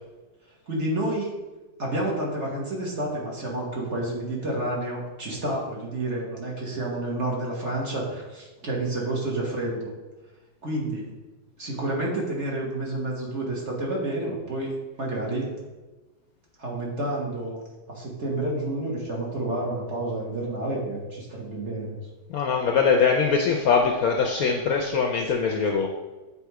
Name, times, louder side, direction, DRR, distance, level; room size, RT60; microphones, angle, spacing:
voice 1, 0.7-1.3 1.8-9.9 10.6-11.1 11.6-14.7 15.0-15.5 16.6-17.6 17.9-22.0, right 1 dB, 40° right, -3 dB, 1.6 m, -29 dB
voice 2, 22.3-25.9, left 5 dB, 65° left, 2 dB, 0.9 m, -22 dB
8.4 x 3.5 x 4.7 m, 1.2 s
omnidirectional pair, 2.0 m